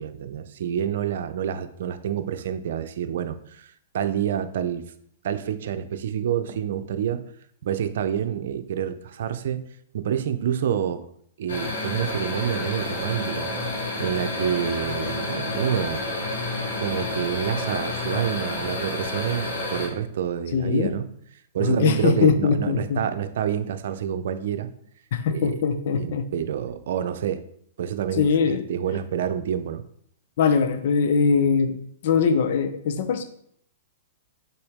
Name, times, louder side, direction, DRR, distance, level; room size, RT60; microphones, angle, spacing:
voice 1, 0.0-4.9 5.2-7.2 7.6-9.6 9.9-11.1 11.4-13.5 14.0-16.0 16.8-21.1 21.5-24.7 25.3-25.5 26.0-27.4 27.8-29.8, right 9 dB, 65° right, 9 dB, 0.6 m, -28 dB
sound 1, 11.5-19.9, left 2 dB, 80° left, 2.5 m, -29 dB
voice 2, 20.5-20.9 21.6-23.0 25.1-26.3 28.2-28.7 30.4-33.2, left 6 dB, 60° left, 9 dB, 0.8 m, -22 dB
6.9 x 4.4 x 3.6 m, 0.67 s
hypercardioid pair, 120°, 0 cm